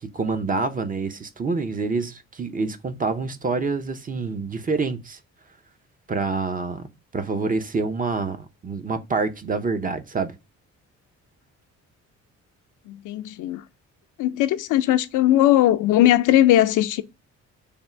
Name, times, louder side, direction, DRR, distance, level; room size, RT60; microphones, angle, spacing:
voice 1, 0.0-5.2 6.1-10.3, right 4 dB, 30° right, 0.6 m, -27 dB
voice 2, 12.9-13.6 14.2-17.0, left 13 dB, 85° left, 0.5 m, -19 dB
3.4 x 2.4 x 4.4 m
cardioid pair, 90°, 30 cm